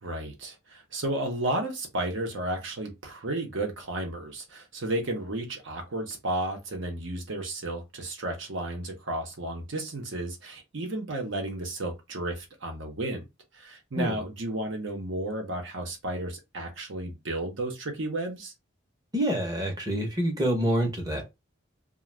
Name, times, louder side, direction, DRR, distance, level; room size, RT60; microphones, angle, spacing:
voice 1, 0.0-13.2 13.5-18.5, right 1 dB, 70° right, 0.8 m, -33 dB
voice 2, 19.1-21.2, equal, 20° right, 0.7 m, -27 dB
2.4 x 2.3 x 3.1 m
head